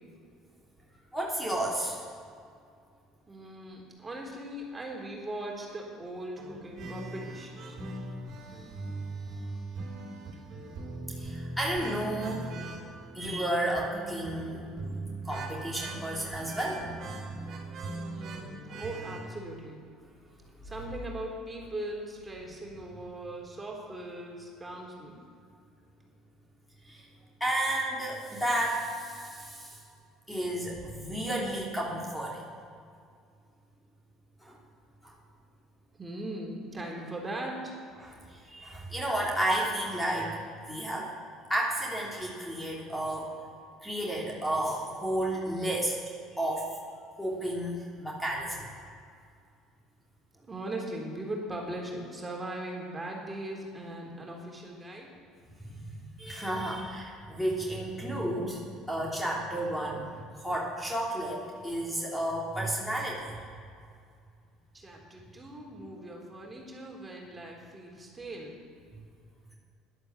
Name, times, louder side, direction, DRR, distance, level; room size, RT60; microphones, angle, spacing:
voice 1, 1.1-2.0 11.2-12.5 13.1-14.6 15.2-16.8 18.7-18.8 26.8-27.0 27.4-29.8 30.3-32.4 34.4-34.6 35.0-35.1 38.0-41.1 41.5-43.3 43.8-46.0 46.3-46.8 47.2-48.7 55.6-60.1 60.3-63.3, right 1 dB, 5° left, -3 dB, 3.3 m, -32 dB
voice 2, 3.3-7.8 18.0-19.8 20.6-25.2 36.0-37.7 50.4-55.1 64.7-68.5, right 1 dB, 20° right, -1 dB, 3.6 m, -39 dB
sound 1, 6.4-19.2, right 2 dB, 50° right, 2.8 m, -40 dB
11.5 x 11.0 x 7.4 m, 2.3 s
hypercardioid pair, 65°, 0 cm